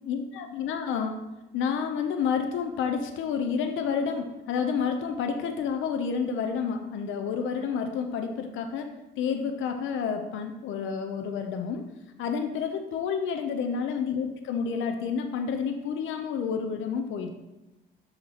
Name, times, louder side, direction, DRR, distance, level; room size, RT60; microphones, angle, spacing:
voice 1, 0.1-1.2 1.5-11.9 12.2-17.3, left 6 dB, 80° left, 5 dB, 0.6 m, -29 dB
6.4 x 3.0 x 5.6 m, 1.0 s
cardioid pair, 90°, 20 cm